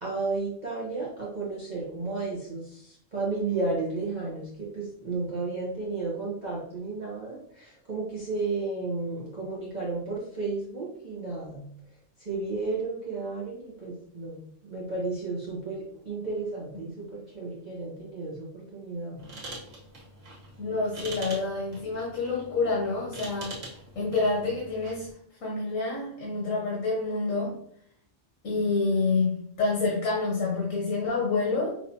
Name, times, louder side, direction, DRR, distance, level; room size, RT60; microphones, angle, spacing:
voice 1, 0.0-11.6 12.2-19.3, right 3 dB, 35° right, -6 dB, 1.1 m, -33 dB
sound 1, 19.2-25.1, right 2 dB, 75° right, 1.6 m, -43 dB
voice 2, 20.6-23.6 23.9-25.1 25.4-27.6 28.4-31.7, left 3 dB, 90° left, -3 dB, 1.4 m, -28 dB
5.6 x 2.9 x 2.8 m, 0.66 s
omnidirectional pair, 1.3 m